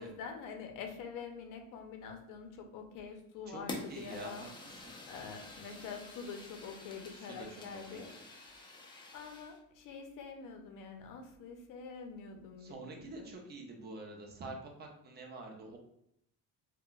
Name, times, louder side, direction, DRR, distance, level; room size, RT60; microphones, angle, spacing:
voice 1, 0.0-4.4 5.1-8.1 9.1-13.3, left 5 dB, 60° left, 4 dB, 0.6 m, -46 dB
Fire, 3.7-9.6, left 2 dB, 15° left, 0.3 m, -48 dB
voice 2, 3.9-4.5 4.8-4.9 7.1-7.5 7.9-8.2 12.6-15.8, right 3 dB, 30° right, 1 dB, 0.5 m, -47 dB
2.2 x 2.2 x 3.7 m, 0.76 s
cardioid pair, 145°, 36 cm